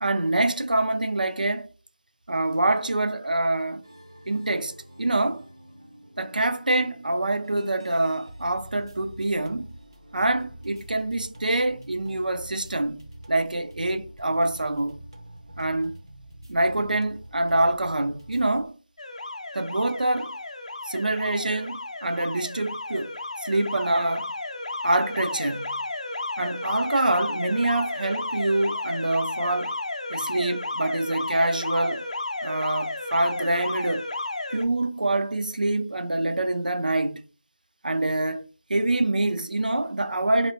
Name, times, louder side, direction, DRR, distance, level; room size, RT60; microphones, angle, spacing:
voice 1, 0.0-1.7 2.3-3.8 4.3-5.5 6.2-9.8 10.1-15.0 15.6-16.0 16.5-18.8 19.5-20.3 20.8-24.3 24.8-25.8 26.4-29.7 30.1-32.0 32.4-34.1 34.5-37.2 37.8-40.5, right 2 dB, 85° right, 0.5 m, -25 dB
sound 1, 3.8-18.7, right 1 dB, 35° right, 0.4 m, -46 dB
Alarm, 19.0-34.6, left 2 dB, 55° left, 0.4 m, -33 dB
2.6 x 2.1 x 2.9 m
figure-of-eight pair, 175°, 4 cm